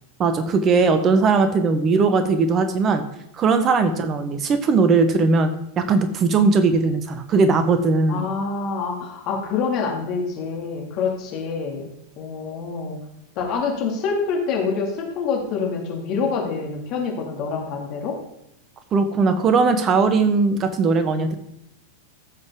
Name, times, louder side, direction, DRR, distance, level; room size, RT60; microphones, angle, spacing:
voice 1, 0.2-3.0 3.4-8.3 18.9-21.4, right 4 dB, 30° right, 9 dB, 1.1 m, -19 dB
voice 2, 8.1-13.0 13.4-18.2, left 5 dB, 40° left, 0 dB, 2.4 m, -26 dB
15.0 x 6.5 x 3.7 m, 0.81 s
figure-of-eight pair, 90°, 0 cm